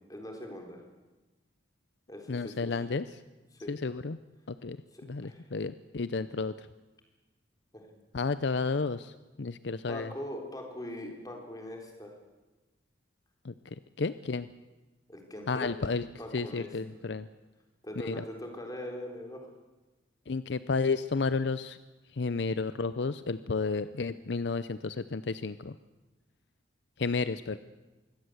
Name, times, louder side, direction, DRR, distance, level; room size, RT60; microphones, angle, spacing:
voice 1, 0.1-0.8 2.1-2.8 3.5-3.7 4.9-5.4 7.7-8.0 9.9-12.1 15.1-15.7 16.2-16.7 17.8-19.5, left 1 dB, 20° left, 2 dB, 3.9 m, -41 dB
voice 2, 2.3-3.1 3.7-4.2 4.5-4.8 5.1-6.7 8.1-10.1 13.4-13.5 14.0-14.5 15.5-16.1 16.3-17.3 18.0-18.2 20.3-21.8 22.1-25.8 27.0-27.6, left 4 dB, 65° left, 14 dB, 0.6 m, -32 dB
23.5 x 17.0 x 8.0 m, 1.2 s
head